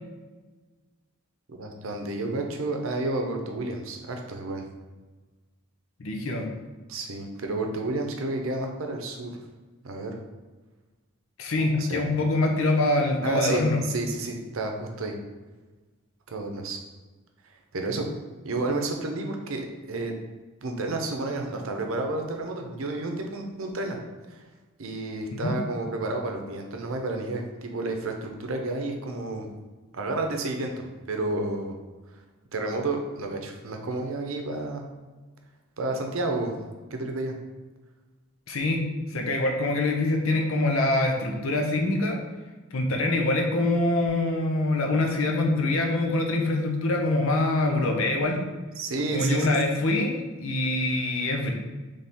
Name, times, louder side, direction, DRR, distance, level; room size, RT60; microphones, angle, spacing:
voice 1, 1.5-4.6 6.9-9.3 9.8-10.2 11.6-12.0 13.2-15.2 16.3-16.8 17.7-18.1 18.4-20.1 20.6-24.0 24.3-24.4 24.8-29.5 29.9-30.7 31.1-31.8 32.5-34.8 35.8-36.6 36.9-37.3 48.8-49.6, right 2 dB, 70° right, 3 dB, 0.7 m, -31 dB
voice 2, 6.0-6.5 11.4-13.8 25.3-25.5 38.5-38.8 39.1-42.2 42.7-48.4 49.1-51.5, left 2 dB, 70° left, 2 dB, 0.7 m, -24 dB
3.5 x 3.3 x 4.2 m, 1.3 s
head